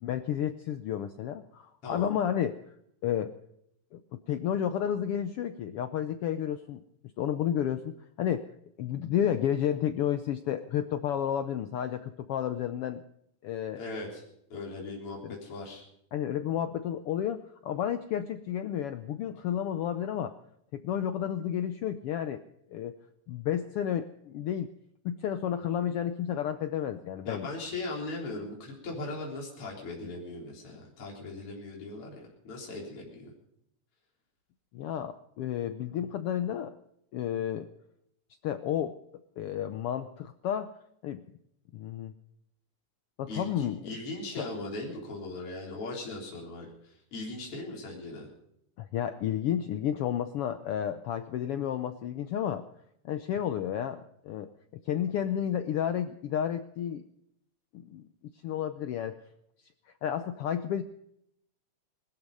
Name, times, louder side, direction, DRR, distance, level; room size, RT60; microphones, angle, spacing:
voice 1, 0.0-2.6 3.0-3.3 3.9-4.0 4.3-6.8 7.2-8.4 8.8-13.0 13.4-13.8 15.2-15.4 16.1-20.3 20.7-22.4 22.7-22.9 23.3-24.7 25.0-27.5 34.7-36.8 37.1-37.7 38.4-39.0 39.4-40.7 41.0-41.2 41.7-42.1 43.2-43.9 44.4-44.5 48.8-52.7 53.0-54.5 54.8-57.0 57.7-58.0 58.4-59.2 60.0-60.8, left 10 dB, 80° left, 10 dB, 1.3 m, -31 dB
voice 2, 1.8-2.1 13.8-14.2 14.5-15.9 27.2-33.3 43.3-48.3, left 2 dB, 45° left, -2 dB, 4.6 m, -39 dB
20.5 x 13.0 x 5.3 m, 0.76 s
omnidirectional pair, 3.4 m